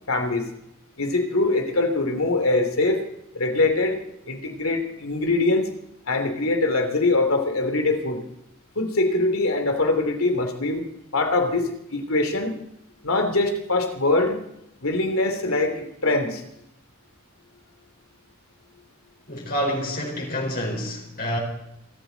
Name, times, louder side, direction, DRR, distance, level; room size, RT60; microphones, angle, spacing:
voice 1, 0.1-0.4 1.0-3.0 3.3-4.0 4.3-5.6 6.1-8.2 8.7-10.8 11.1-12.5 13.0-14.4 14.8-16.4, left 2 dB, 75° left, 5 dB, 2.9 m, -23 dB
voice 2, 19.3-21.4, equal, 45° left, -1 dB, 4.5 m, -28 dB
24.5 x 13.5 x 4.0 m, 0.82 s
head